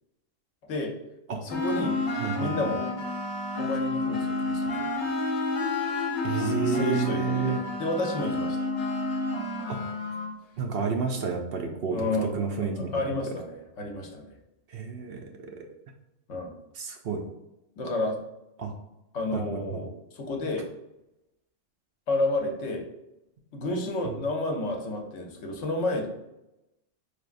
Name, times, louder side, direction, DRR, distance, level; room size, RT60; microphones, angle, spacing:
voice 1, 1.4-2.0 2.4-2.9 3.6-5.1 6.3-8.7 11.9-12.3 12.8-14.4 16.3-16.5 17.8-18.2 19.1-20.7 22.1-22.9 23.5-26.1, left 2 dB, 85° left, 2 dB, 1.1 m, -31 dB
sound 1, 1.5-10.3, left 2 dB, 65° left, 1.2 m, -30 dB
voice 2, 2.2-2.7 6.2-7.6 9.7-9.8 10.6-13.1 14.7-15.7 16.7-17.2 18.6-18.7 19.3-19.8 24.0-24.2, right 5 dB, 60° right, 3 dB, 0.7 m, -30 dB
4.7 x 3.4 x 2.5 m, 0.92 s
omnidirectional pair, 1.3 m